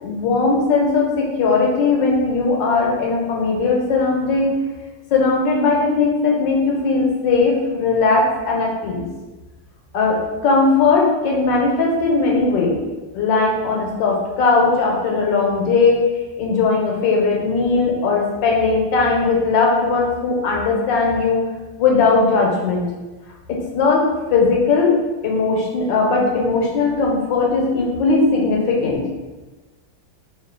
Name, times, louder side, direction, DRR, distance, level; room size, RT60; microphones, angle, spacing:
voice 1, 0.0-4.5 5.1-9.0 9.9-10.2 10.4-12.7 13.1-16.0 16.4-21.4 21.8-22.8 23.7-24.0 24.3-25.0 25.2-29.0, left 4 dB, 75° left, -1 dB, 1.4 m, -18 dB
3.1 x 2.7 x 3.6 m, 1.2 s
omnidirectional pair, 2.1 m